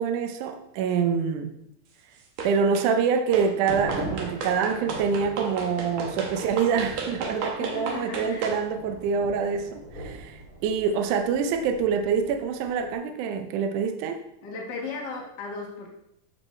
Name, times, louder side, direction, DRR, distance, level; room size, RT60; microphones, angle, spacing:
voice 1, 0.0-1.6 2.4-14.2, right 6 dB, 80° right, 6 dB, 1.9 m, -26 dB
sound 1, 2.4-2.9 3.3-8.6, right 4 dB, 60° right, 2.0 m, -34 dB
sound 2, 3.5-12.9, right 1 dB, 30° right, 2.8 m, -41 dB
voice 2, 7.6-8.5 14.4-15.9, left 4 dB, 65° left, -2 dB, 1.0 m, -36 dB
13.5 x 5.3 x 3.2 m, 0.79 s
omnidirectional pair, 4.2 m